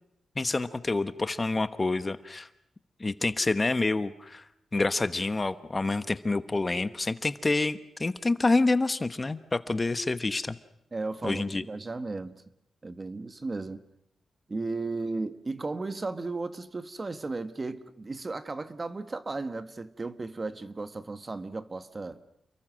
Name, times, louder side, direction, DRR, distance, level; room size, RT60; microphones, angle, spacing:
voice 1, 0.4-2.5 3.0-4.4 4.7-10.6 11.2-11.6, left 3 dB, 25° left, 1.0 m, -27 dB
voice 2, 10.9-12.4 12.8-13.8 14.5-22.2, right 3 dB, 30° right, 1.4 m, -35 dB
29.0 x 22.5 x 6.3 m
cardioid pair, 100°, 0 cm